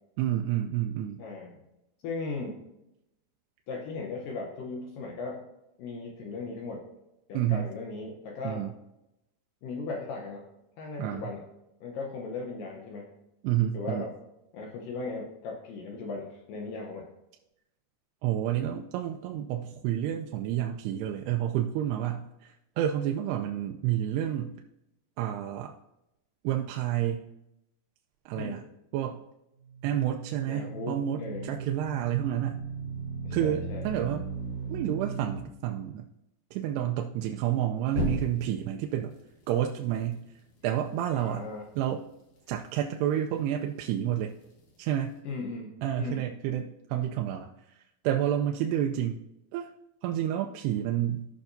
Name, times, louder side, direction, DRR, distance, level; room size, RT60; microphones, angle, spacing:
voice 1, 0.2-1.2 7.3-7.7 8.4-8.7 11.0-11.2 13.4-14.1 18.2-24.6 25.2-25.7 26.4-27.2 28.3-28.6 28.9-29.2 29.8-32.6 33.3-34.3 34.7-36.1 36.5-39.1 39.5-40.2 40.6-41.5 41.8-42.0 42.5-44.4 44.8-45.1 45.8-47.8 48.0-49.2 49.5-49.7 50.0-51.3, right 11 dB, 85° right, 3 dB, 2.6 m, -29 dB
voice 2, 1.2-1.6 2.0-2.6 3.7-5.4 5.8-6.8 7.3-8.6 9.6-10.5 10.8-11.4 11.8-13.1 13.7-14.1 14.5-17.1 24.2-24.3 28.4-28.6 30.5-31.5 33.2-33.8 41.1-41.7 45.2-46.2, left 3 dB, 70° left, -1 dB, 2.2 m, -37 dB
sound 1, 29.6-35.4 37.9-38.7, right 3 dB, 50° left, 2.1 m, -36 dB
16.0 x 5.8 x 2.6 m, 0.88 s
omnidirectional pair, 4.7 m